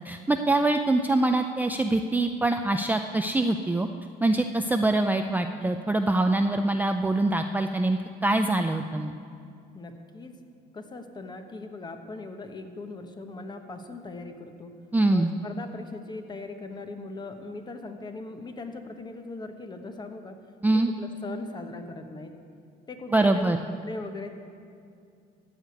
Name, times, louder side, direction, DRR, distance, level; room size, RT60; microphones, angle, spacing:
voice 1, 0.1-3.9 4.2-9.1 14.9-15.3 20.6-20.9 23.1-23.6, right 2 dB, 10° right, 5 dB, 0.4 m, -24 dB
voice 2, 9.7-10.3 10.7-14.7 15.1-20.4 21.0-22.3 22.9-24.3, left 3 dB, 25° left, 6 dB, 1.1 m, -39 dB
14.5 x 5.0 x 9.2 m, 2.4 s
cardioid pair, 110°, 17 cm